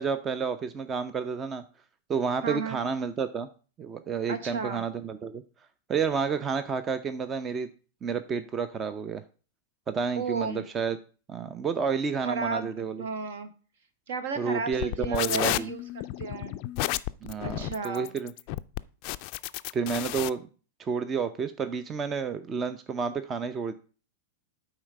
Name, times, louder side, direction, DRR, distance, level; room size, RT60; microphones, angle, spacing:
voice 1, 0.0-1.6 2.1-3.5 3.8-5.4 5.9-7.7 8.0-9.2 9.9-11.0 11.3-13.1 14.4-15.7 17.2-18.3 19.7-20.5 20.8-23.7, right 5 dB, 25° right, 12 dB, 0.6 m, -30 dB
voice 2, 2.4-2.8 4.3-4.8 10.2-10.6 12.2-12.7 13.0-13.5 14.1-15.8 16.2-16.5 17.4-18.1, right 4 dB, 65° right, 10 dB, 1.2 m, -33 dB
sound 1, 14.7-20.3, left 18 dB, 50° left, 0.3 m, -32 dB
8.9 x 4.0 x 5.3 m, 0.37 s
figure-of-eight pair, 95°, 0 cm